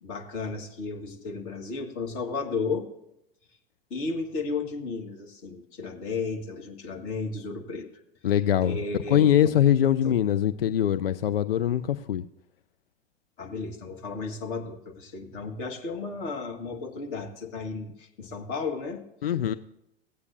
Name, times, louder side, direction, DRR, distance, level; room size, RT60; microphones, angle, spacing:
voice 1, 0.0-2.9 3.9-7.9 8.6-9.3 10.0-10.1 13.4-19.0, left 4 dB, 40° left, 2 dB, 1.5 m, -33 dB
voice 2, 8.2-8.8 9.1-12.2 19.2-19.6, left 10 dB, 70° left, 10 dB, 0.5 m, -22 dB
17.0 x 8.1 x 2.6 m, 0.82 s
figure-of-eight pair, 90°, 30 cm